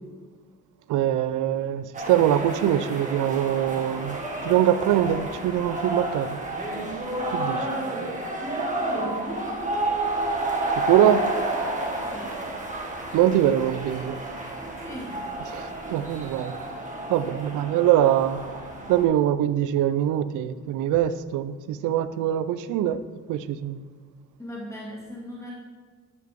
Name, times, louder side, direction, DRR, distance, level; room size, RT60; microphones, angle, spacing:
voice 1, 0.9-4.2 4.4-6.4 7.3-7.6 10.8-11.2 13.1-14.2 15.5-16.5 17.1-18.4 18.9-23.0 23.3-23.8, right 11 dB, 85° right, 0.5 m, -23 dB
sound 1, 1.9-19.0, right 2 dB, 25° right, 1.8 m, -30 dB
voice 2, 8.8-9.6 11.9-12.4 14.8-15.3 24.4-25.6, equal, 10° left, 2.3 m, -39 dB
10.5 x 5.8 x 3.6 m
cardioid pair, 90°, 30 cm